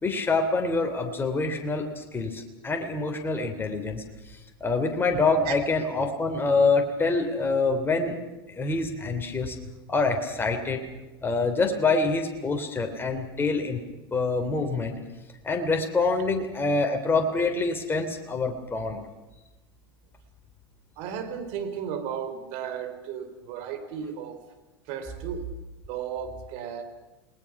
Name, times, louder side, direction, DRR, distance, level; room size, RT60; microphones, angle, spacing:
voice 1, 0.0-4.0 4.3-8.2 8.5-9.6 9.9-10.8 11.2-13.8 14.1-15.0 15.4-19.0, left 3 dB, 15° left, 4 dB, 3.2 m, -26 dB
voice 2, 21.0-24.4 24.8-25.4 25.9-26.8, right 8 dB, 55° right, 8 dB, 3.8 m, -34 dB
29.5 x 20.0 x 6.0 m, 1.0 s
hypercardioid pair, 90°, 13 cm